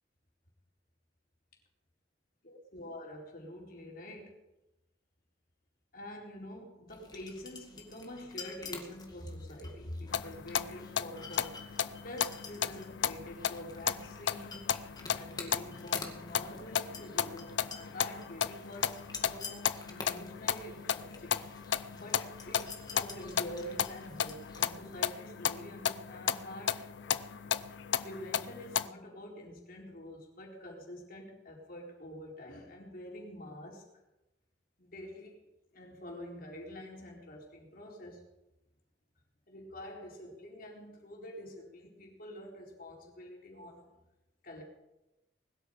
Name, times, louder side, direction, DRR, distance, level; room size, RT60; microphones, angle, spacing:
voice 1, 2.4-4.4 5.9-11.7 12.0-14.8 15.1-21.4 21.9-26.8 28.0-33.9 34.8-35.4 35.7-38.2 39.5-43.9 44.4-44.6, left 1 dB, 55° left, -1 dB, 4.4 m, -46 dB
sound 1, 6.9-25.0, left 4 dB, 25° left, 2.2 m, -49 dB
sound 2, 10.1-28.9, left 8 dB, 85° left, 0.6 m, -35 dB
20.5 x 12.5 x 5.1 m, 0.97 s
head